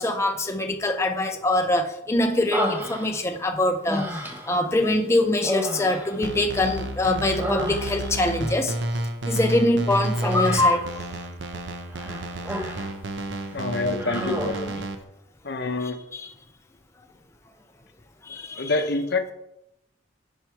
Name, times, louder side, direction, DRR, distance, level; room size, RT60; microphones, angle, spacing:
voice 1, 0.0-4.1 4.5-8.7 9.2-10.9 18.3-18.6, left 1 dB, 15° left, 4 dB, 0.5 m, -23 dB
Human voice, 2.5-3.4 3.9-4.6 5.4-6.8 7.2-8.2 10.2-10.9 11.9-13.0 13.3-13.5 14.0-14.8, equal, 10° right, 1.1 m, -30 dB
sound 1, 6.2-14.9, right 1 dB, 70° right, 0.9 m, -31 dB
voice 2, 13.5-14.9 15.4-16.0 18.6-19.3, left 2 dB, 60° left, 8 dB, 0.8 m, -27 dB
10.5 x 4.6 x 4.6 m, 0.83 s
head